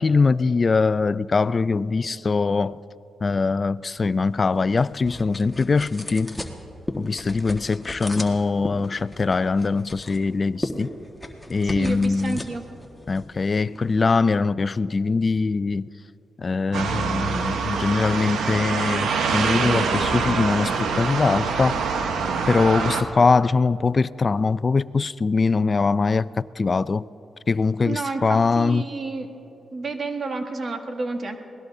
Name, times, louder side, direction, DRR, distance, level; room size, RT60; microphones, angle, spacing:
voice 1, 0.0-2.8 3.2-6.4 7.0-10.9 11.5-12.4 13.1-15.9 16.4-21.8 22.5-27.1 27.5-28.9, left 4 dB, 40° left, 0.3 m, -22 dB
sound 1, 4.0-14.2, left 1 dB, 10° left, 1.5 m, -37 dB
voice 2, 11.6-12.6 27.8-29.3 29.7-31.3, right 3 dB, 50° right, 1.4 m, -30 dB
sound 2, 16.7-23.0, right 5 dB, 85° right, 1.0 m, -25 dB
27.0 x 18.5 x 2.7 m
cardioid pair, 70°, 0 cm